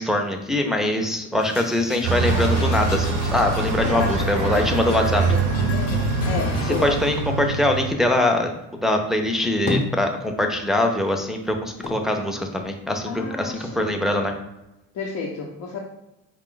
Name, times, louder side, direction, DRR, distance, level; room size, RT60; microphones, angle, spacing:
voice 1, 0.0-5.2 6.8-8.5 8.8-14.3, left 1 dB, ahead, 3 dB, 0.5 m, -23 dB
sound 1, 1.4-6.9, left 7 dB, 50° left, 0.4 m, -31 dB
Bus, 2.0-7.9, right 5 dB, 90° right, 0.5 m, -24 dB
voice 2, 3.8-7.0 13.1-14.0 14.9-15.8, left 4 dB, 65° left, -2 dB, 0.8 m, -31 dB
sound 2, 9.2-10.7 11.0-13.4 13.8-14.7, left 2 dB, 20° left, 0.8 m, -32 dB
4.8 x 2.4 x 3.7 m, 0.95 s
cardioid pair, 105°, 32 cm